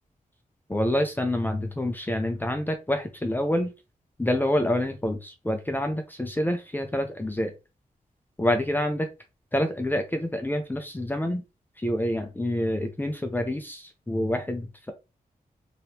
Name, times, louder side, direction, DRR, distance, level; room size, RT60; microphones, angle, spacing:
voice 1, 0.7-3.7 4.2-7.5 8.4-9.1 9.5-11.4 11.8-14.9, left 1 dB, 15° left, 0.5 m, -27 dB
3.1 x 2.9 x 2.8 m
wide cardioid pair, 110°, 15 cm